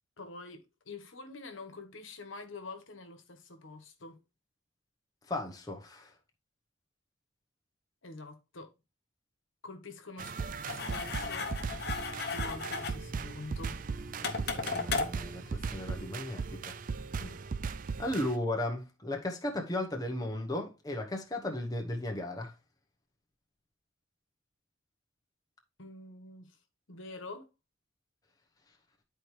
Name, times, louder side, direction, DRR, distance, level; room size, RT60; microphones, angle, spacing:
voice 1, 0.2-4.2 8.0-8.7 9.6-10.4 10.7-11.5 12.3-13.8 17.2-17.5 25.8-26.6 26.9-27.5, left 3 dB, 80° left, 1.3 m, -46 dB
voice 2, 5.3-6.1 14.2-14.3 14.5-16.7 18.0-22.5, left 1 dB, 20° left, 1.0 m, -35 dB
sound 1, 10.2-18.4, right 4 dB, 40° right, 0.4 m, -38 dB
sound 2, 10.7-16.2, left 4 dB, 50° left, 0.9 m, -37 dB
10.5 x 4.4 x 3.2 m
head